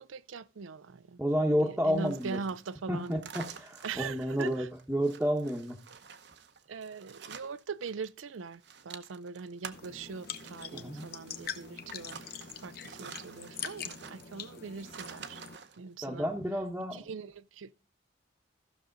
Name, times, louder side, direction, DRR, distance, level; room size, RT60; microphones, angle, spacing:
voice 1, 0.0-1.2 1.6-3.2 3.8-4.7 6.7-15.4 15.8-16.3 16.9-17.7, right 5 dB, 80° right, 0.5 m, -41 dB
voice 2, 1.2-2.4 2.9-5.8 10.7-11.1 16.0-17.1, equal, 5° right, 1.0 m, -30 dB
sound 1, 1.9-8.1 8.3-15.8, right 6 dB, 55° right, 0.8 m, -49 dB
sound 2, 9.7-15.6, left 7 dB, 50° left, 0.8 m, -44 dB
15.0 x 6.4 x 3.8 m
head